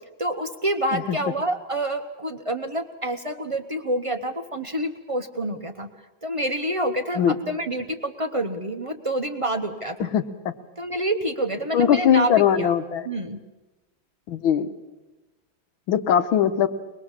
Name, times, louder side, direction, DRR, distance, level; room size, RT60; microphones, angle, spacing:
voice 1, 0.2-5.9 6.2-10.1 10.8-12.7 13.0-13.4, right 1 dB, 35° right, 7 dB, 0.5 m, -27 dB
voice 2, 11.7-13.1 14.3-14.7 15.9-16.7, left 9 dB, 85° left, 10 dB, 1.8 m, -20 dB
24.0 x 20.5 x 7.3 m, 1.1 s
omnidirectional pair, 2.2 m